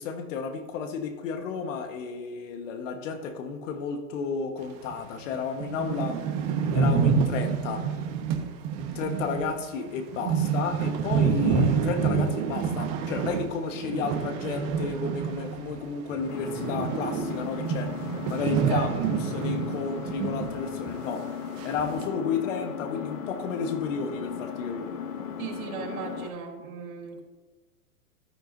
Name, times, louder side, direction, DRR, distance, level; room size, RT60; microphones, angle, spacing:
voice 1, 0.0-6.2 6.7-7.9 8.9-21.3 21.6-25.0, left 5 dB, 55° left, 6 dB, 1.5 m, -32 dB
sound 1, 4.9-5.0 5.3-5.4 5.6-15.8 16.1-20.6 20.9-21.0 21.6-22.0, right 6 dB, 35° right, 1.5 m, -28 dB
Engine, 16.3-26.3, left 7 dB, 80° left, 1.3 m, -37 dB
voice 2, 25.4-27.2, right 6 dB, 65° right, -1 dB, 3.8 m, -36 dB
13.5 x 10.5 x 2.7 m, 1.3 s
hypercardioid pair, 130°, 45 cm